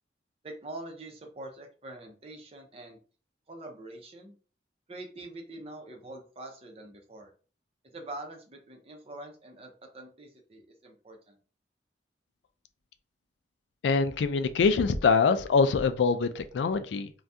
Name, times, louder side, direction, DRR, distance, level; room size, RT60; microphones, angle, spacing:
voice 1, 0.4-3.0 3.5-4.3 4.9-7.3 7.8-11.4, right 2 dB, 35° right, 0.7 m, -44 dB
voice 2, 13.8-17.1, left 4 dB, 85° left, 0.4 m, -24 dB
2.7 x 2.3 x 3.4 m
head